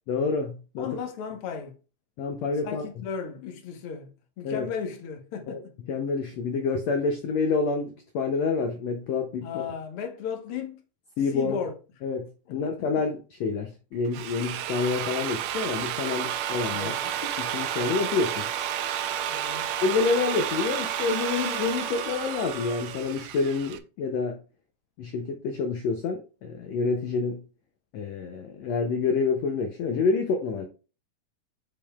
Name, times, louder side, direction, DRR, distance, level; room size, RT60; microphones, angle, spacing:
voice 1, 0.1-1.0 2.2-2.8 4.4-4.7 5.5-5.6 5.9-9.6 11.2-11.6 12.0-16.9 17.4-18.5 19.8-24.4 25.0-27.4 27.9-30.7, left 4 dB, 80° left, 1.5 m, -28 dB
voice 2, 0.8-1.7 2.6-4.1 4.4-5.7 9.4-10.8 11.3-11.7 12.5-12.7 16.7-17.0 19.3-19.7, left 7 dB, 60° left, 1.6 m, -35 dB
Drill, 13.9-23.8, right 11 dB, 80° right, 2.1 m, -32 dB
Wind instrument woodwind instrument, 16.0-23.0, right 5 dB, 40° right, 2.1 m, -38 dB
8.5 x 5.3 x 2.4 m
omnidirectional pair, 4.0 m